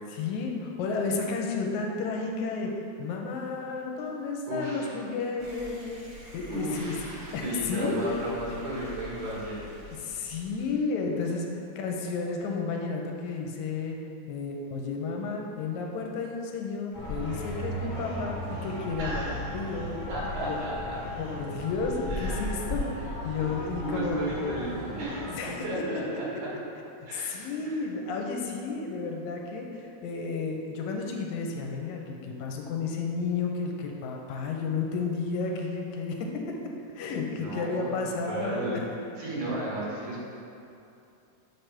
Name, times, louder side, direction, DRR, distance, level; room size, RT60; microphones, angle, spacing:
voice 1, 0.1-2.7 3.0-6.0 6.3-7.0 7.3-8.2 10.0-14.0 14.3-20.0 20.4-20.6 21.2-24.2 25.3-25.7 27.1-36.6 37.0-38.8, left 4 dB, 85° left, 1 dB, 2.0 m, -32 dB
voice 2, 4.4-5.0 6.5-9.6 19.0-19.8 20.1-21.0 22.1-22.6 23.4-23.6 23.8-26.5 27.1-27.4 27.6-27.8 37.3-37.9 38.3-38.8 39.2-40.2, right 1 dB, 90° right, -6 dB, 3.1 m, -34 dB
sound 1, 5.4-10.7, left 1 dB, 50° right, 2.3 m, -46 dB
sound 2, 16.9-25.4, equal, 45° left, 1.8 m, -36 dB
6.8 x 3.3 x 5.9 m, 2.7 s
omnidirectional pair, 3.4 m